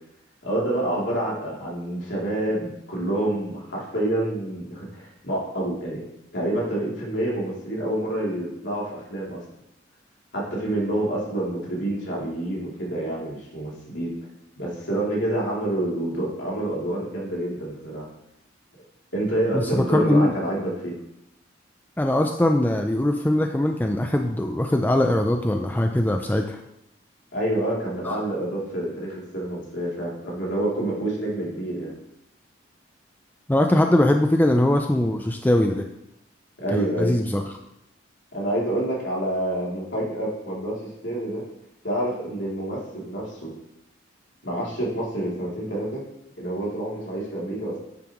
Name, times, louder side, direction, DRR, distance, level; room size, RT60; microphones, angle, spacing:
voice 1, 0.4-6.0 6.3-9.4 10.3-14.1 14.6-18.1 19.1-21.0 27.3-31.9 36.6-37.1 38.3-41.4 41.8-43.5 44.4-46.0 46.4-47.8, right 1 dB, 70° left, -4 dB, 2.9 m, -27 dB
voice 2, 19.5-20.3 22.0-26.6 28.0-28.2 33.5-35.9 36.7-37.4, left 1 dB, 10° left, 4 dB, 0.4 m, -21 dB
9.7 x 7.0 x 3.0 m, 0.84 s
head